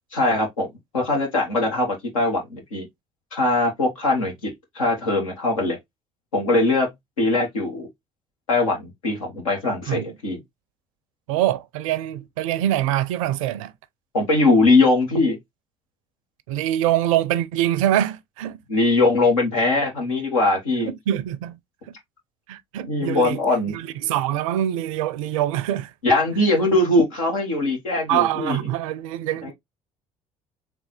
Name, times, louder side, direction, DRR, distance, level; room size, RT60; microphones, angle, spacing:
voice 1, 0.1-0.7 0.9-2.9 3.3-5.8 6.3-6.9 7.2-7.9 8.5-10.4 14.1-15.4 18.7-20.9 22.9-23.7 26.0-28.6 29.4-29.5, left 2 dB, 80° left, 1.5 m, -21 dB
voice 2, 11.3-13.7 16.5-18.6 20.8-21.6 21.9-22.0 22.5-23.4 23.7-25.9 28.1-29.5, right 12 dB, 75° right, 0.5 m, -24 dB
3.7 x 3.3 x 3.1 m
hypercardioid pair, 55°, 17 cm